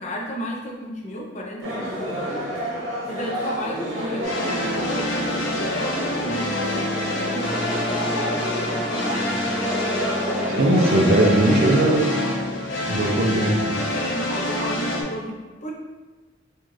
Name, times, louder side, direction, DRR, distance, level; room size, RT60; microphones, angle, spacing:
voice 1, 0.0-2.4 3.1-9.5 13.9-15.7, equal, 35° left, -1 dB, 0.6 m, -33 dB
sound 1, 1.6-11.9, equal, 80° right, 1.1 m, -29 dB
sound 2, 4.2-15.0, left 1 dB, 60° left, 0.8 m, -26 dB
voice 2, 10.5-12.1 12.9-13.7, right 1 dB, 45° right, 1 dB, 0.5 m, -19 dB
4.4 x 2.4 x 3.1 m, 1.3 s
head